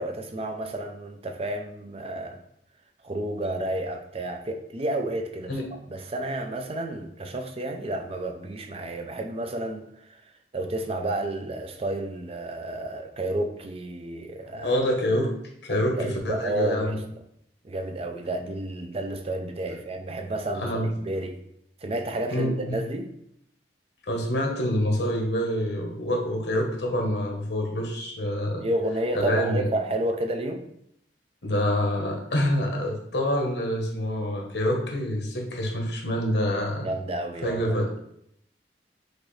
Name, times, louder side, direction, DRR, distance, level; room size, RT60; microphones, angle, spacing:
voice 1, 0.0-2.4 3.0-5.6 5.9-10.2 10.5-14.8 15.7-17.0 17.6-21.4 21.8-23.1 28.6-30.7 36.8-37.9, right 1 dB, 35° right, 5 dB, 0.5 m, -31 dB
voice 2, 14.4-15.3 15.6-17.0 20.5-20.9 22.3-22.8 24.1-28.6 29.1-29.6 31.4-36.9 37.4-38.0, equal, 70° left, 1 dB, 1.1 m, -26 dB
6.1 x 2.6 x 3.2 m, 0.73 s
head